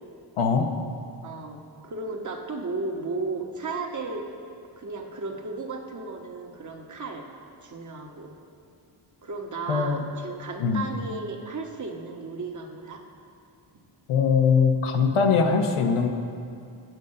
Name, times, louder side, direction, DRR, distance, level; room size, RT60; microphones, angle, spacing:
voice 1, 0.4-0.7 9.7-10.0 10.6-10.8 14.1-16.1, left 5 dB, 80° left, 4 dB, 0.9 m, -21 dB
voice 2, 1.2-4.2 4.8-7.2 7.6-8.3 9.2-13.0, right 3 dB, 35° right, 2 dB, 1.1 m, -34 dB
9.3 x 5.3 x 6.5 m, 2.4 s
cardioid pair, 70°, 49 cm